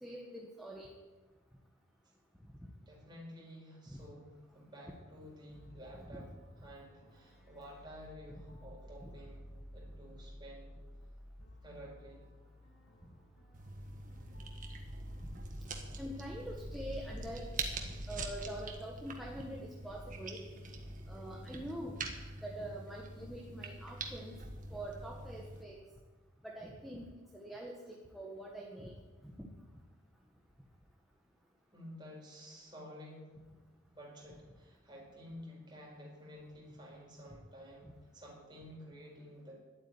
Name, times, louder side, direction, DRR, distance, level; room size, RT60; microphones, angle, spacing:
voice 1, 0.0-0.9 3.9-4.0 6.1-6.2 9.0-9.1 15.2-15.4 16.0-17.5 18.1-20.4 21.1-22.0 22.4-24.4 24.7-25.8 26.4-28.9 29.2-29.5 37.8-37.9, right 1 dB, ahead, -3 dB, 1.3 m, -45 dB
voice 2, 2.9-6.3 6.6-9.4 9.7-10.8 11.6-12.3 31.7-33.4 33.9-39.5, equal, 20° right, -3 dB, 4.5 m, -52 dB
sound 1, 5.6-17.3, equal, 75° left, 2.9 m, -53 dB
sound 2, 13.5-25.6, right 2 dB, 40° right, 1.6 m, -44 dB
11.5 x 8.6 x 9.7 m, 1.3 s
head